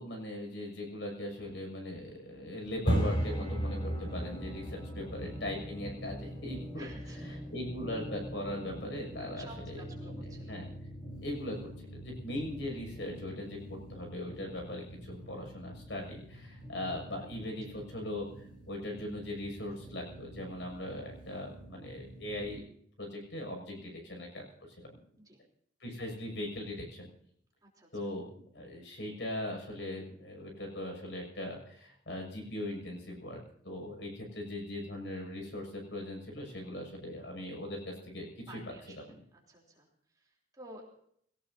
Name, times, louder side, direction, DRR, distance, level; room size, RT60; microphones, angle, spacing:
voice 1, 0.0-6.8 7.5-9.8 10.1-10.2 10.5-10.7 11.2-22.6 23.0-25.0 25.8-27.1 27.9-28.3 28.5-38.4 39.1-39.2, left 1 dB, 75° left, 2 dB, 6.5 m, -40 dB
sound 1, 2.7-22.6, equal, 30° left, 3.5 m, -40 dB
voice 2, 4.8-5.4 6.8-7.4 9.3-10.6 11.1-11.3 17.1-17.3 17.6-18.0 23.8-24.0 25.2-25.4 27.6-28.1 38.5-40.8, right 1 dB, 20° right, -2 dB, 3.6 m, -54 dB
21.5 x 18.0 x 2.8 m, 0.65 s
head